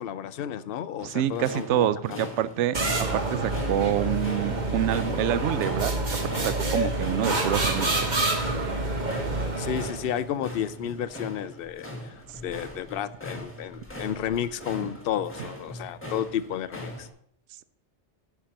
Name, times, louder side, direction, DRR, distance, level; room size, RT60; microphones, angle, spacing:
voice 1, 0.0-2.2 9.6-12.2 12.4-17.1, left 9 dB, 60° left, 14 dB, 0.8 m, -32 dB
sound 1, 1.0-17.1, equal, 10° left, 1.6 m, -41 dB
voice 2, 1.0-5.9 6.4-8.1, right 11 dB, 80° right, 16 dB, 0.9 m, -27 dB
sound 2, 2.7-10.1, right 2 dB, 40° right, 1.5 m, -27 dB
10.0 x 5.9 x 6.5 m, 0.68 s
omnidirectional pair, 1.2 m